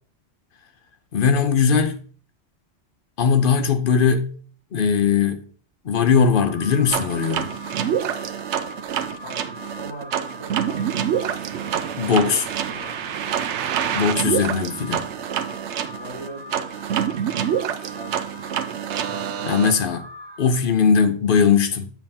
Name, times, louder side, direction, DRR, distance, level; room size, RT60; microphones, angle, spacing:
voice 1, 1.1-2.0 3.2-4.4 4.7-5.5 5.8-7.5 12.0-12.5 13.8-15.0 19.4-20.1 20.4-21.9, left 6 dB, 50° left, 0.9 m, -19 dB
Alarm, 6.4-20.5, left 1 dB, 55° right, 1.5 m, -41 dB
sound 1, 6.9-19.7, right 9 dB, 80° right, 0.9 m, -27 dB
voice 2, 9.2-13.0 15.9-17.6 17.9-18.4, right 2 dB, 85° left, 4.6 m, -41 dB
7.6 x 7.2 x 2.8 m
omnidirectional pair, 1.2 m